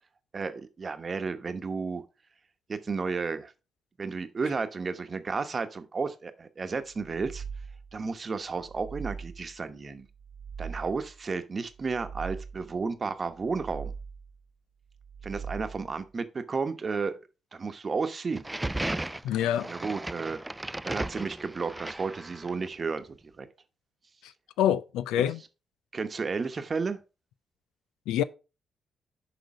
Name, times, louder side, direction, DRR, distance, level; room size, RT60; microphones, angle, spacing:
voice 1, 0.3-2.0 2.7-3.5 4.0-7.4 7.9-10.1 10.6-13.9 15.2-17.2 17.5-18.4 19.7-20.4 20.8-23.5 25.9-27.0, right 4 dB, 45° right, 1.0 m, -32 dB
sound 1, 6.9-8.0 8.5-9.6 10.1-11.2 11.7-12.8 13.3-14.4 14.9-16.0, right 6 dB, 80° right, 0.5 m, -41 dB
sound 2, 18.3-22.7, right 1 dB, 15° right, 0.3 m, -35 dB
voice 2, 19.2-19.7 24.2-24.3 24.6-25.4 28.1-28.2, left 11 dB, 80° left, 0.4 m, -26 dB
6.4 x 5.0 x 4.9 m
hypercardioid pair, 45°, 0 cm